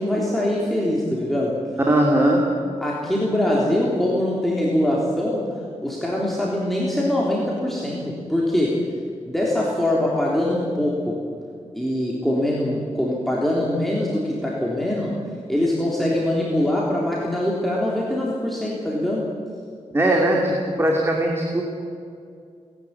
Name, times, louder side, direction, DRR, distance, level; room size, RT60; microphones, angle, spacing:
voice 1, 0.0-1.6 2.8-5.5 5.8-8.8 9.3-11.2 11.7-15.1 15.5-19.3, left 1 dB, ahead, -5 dB, 3.6 m, -23 dB
voice 2, 1.9-2.4 19.9-21.6, right 1 dB, 20° right, -1 dB, 2.9 m, -19 dB
29.5 x 12.0 x 8.4 m, 2.3 s
wide cardioid pair, 105°, 12 cm